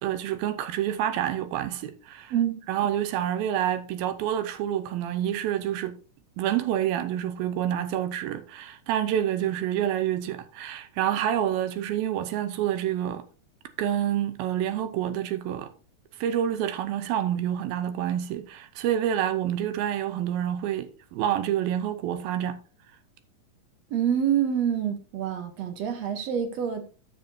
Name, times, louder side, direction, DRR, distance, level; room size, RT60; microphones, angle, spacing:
voice 1, 0.0-2.3 2.7-6.0 6.4-13.3 13.8-15.7 16.2-22.6, right 10 dB, 90° right, 2.6 m, -28 dB
voice 2, 2.3-2.9 23.9-27.0, right 9 dB, 75° right, 1.6 m, -27 dB
13.0 x 6.8 x 2.7 m
omnidirectional pair, 4.2 m